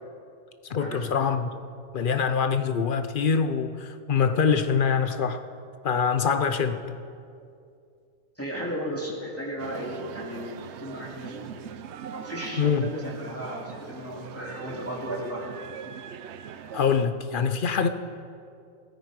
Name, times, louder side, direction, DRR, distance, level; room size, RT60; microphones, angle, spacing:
voice 1, 0.7-1.5 1.9-5.4 5.8-6.9 12.6-12.9 16.7-17.9, left 6 dB, 50° left, 10 dB, 0.7 m, -24 dB
voice 2, 8.4-11.4 12.1-15.5, equal, 10° left, -5 dB, 2.6 m, -35 dB
sound 1, 9.6-17.1, right 8 dB, 65° right, 0.8 m, -41 dB
16.0 x 14.0 x 4.8 m, 2.4 s
omnidirectional pair, 1.4 m